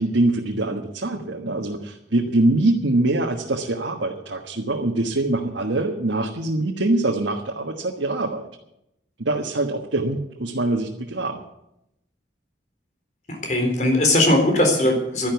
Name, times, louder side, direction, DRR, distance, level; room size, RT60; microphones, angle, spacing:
voice 1, 0.0-8.5 9.2-11.5, right 2 dB, 90° right, 0 dB, 1.5 m, -23 dB
voice 2, 13.3-15.3, left 1 dB, 40° left, 3 dB, 4.0 m, -19 dB
12.5 x 10.5 x 8.3 m, 0.81 s
head